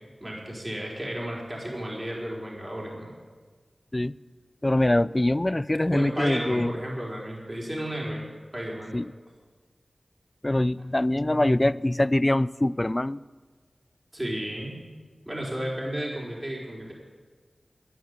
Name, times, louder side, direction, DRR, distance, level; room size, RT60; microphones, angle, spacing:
voice 1, 0.2-3.1 5.9-8.2 8.5-9.0 14.1-14.8 15.3-16.9, right 1 dB, 25° right, -3 dB, 4.4 m, -33 dB
voice 2, 4.6-6.7 8.9-9.1 10.4-13.2, left 1 dB, 25° left, 20 dB, 0.3 m, -23 dB
10.5 x 10.5 x 9.6 m, 1.4 s
cardioid pair, 50°, 0 cm